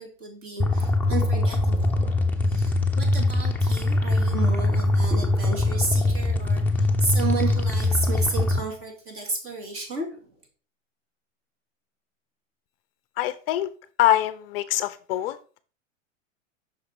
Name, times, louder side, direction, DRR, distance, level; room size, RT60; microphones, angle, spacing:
voice 1, 0.0-10.3, right 3 dB, 35° right, 1 dB, 2.5 m, -32 dB
sound 1, 0.6-8.6, left 2 dB, 5° left, 0.7 m, -22 dB
voice 2, 13.2-13.7 14.0-15.4, left 14 dB, 50° left, 13 dB, 0.5 m, -24 dB
6.0 x 4.9 x 4.5 m, 0.39 s
hypercardioid pair, 125°, 39 cm